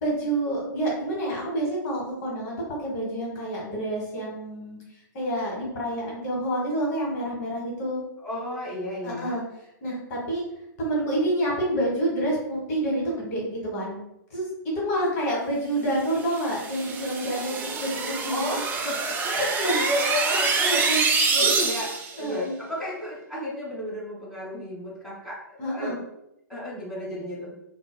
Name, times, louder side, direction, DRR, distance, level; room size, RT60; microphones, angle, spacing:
voice 1, 0.0-2.6 2.8-4.8 5.1-8.0 9.0-9.4 9.8-10.4 10.8-14.0 14.3-14.5 14.7-18.6 19.3-19.8 20.7-21.0 21.4-21.5 22.2-22.5 25.6-26.0, right 1 dB, 45° left, -3 dB, 1.1 m, -28 dB
voice 2, 8.2-9.4 18.3-20.9 21.3-25.9 26.5-27.5, left 1 dB, ahead, -9 dB, 1.5 m, -32 dB
sound 1, 16.2-22.2, right 4 dB, 20° right, 0.3 m, -26 dB
3.8 x 2.2 x 2.2 m, 0.83 s
hypercardioid pair, 120°, 11 cm